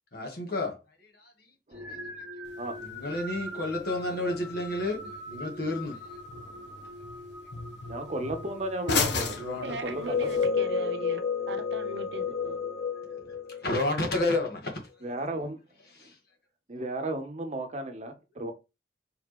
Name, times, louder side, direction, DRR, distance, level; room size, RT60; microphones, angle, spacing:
voice 1, 0.1-0.8 1.2-1.3 2.8-6.1 9.2-9.8 13.6-14.7 16.0-16.1, left 2 dB, 65° left, 1.5 m, -31 dB
sound 1, 1.7-13.7, left 1 dB, ahead, 1.9 m, -43 dB
voice 2, 1.7-2.0 2.6-2.7 4.0-4.4 6.3-6.8 7.9-10.4 15.0-15.6 16.7-18.5, right 1 dB, 40° right, 0.8 m, -35 dB
sound 2, 2.4-10.4, left 4 dB, 85° left, 0.9 m, -37 dB
voice 3, 9.6-11.2 11.5-12.6, right 2 dB, 80° right, 0.8 m, -38 dB
sound 3, 9.9-14.5, left 6 dB, 35° left, 0.3 m, -30 dB
4.3 x 3.5 x 3.0 m
head